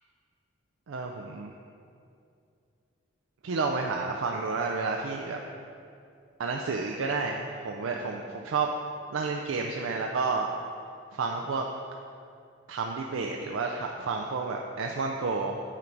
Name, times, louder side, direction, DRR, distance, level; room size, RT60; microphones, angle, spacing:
voice 1, 0.9-1.5 3.4-5.4 6.4-8.7 9.1-10.5 11.1-11.7 12.7-15.6, right 4 dB, 75° right, 1 dB, 0.4 m, -30 dB
8.8 x 3.9 x 4.6 m, 2.5 s
head